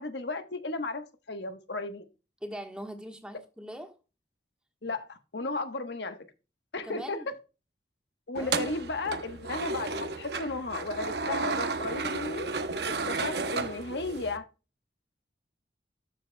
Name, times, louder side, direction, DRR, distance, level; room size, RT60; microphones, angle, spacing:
voice 1, 0.0-2.1 4.8-6.2 6.7-7.2 8.3-12.5 13.1-14.5, left 3 dB, 80° left, 1.2 m, -34 dB
voice 2, 2.4-3.9 6.8-7.3 8.4-8.7, equal, 5° right, 1.3 m, -41 dB
sound 1, 8.3-14.4, right 4 dB, 70° right, 0.8 m, -33 dB
13.0 x 6.4 x 2.2 m
head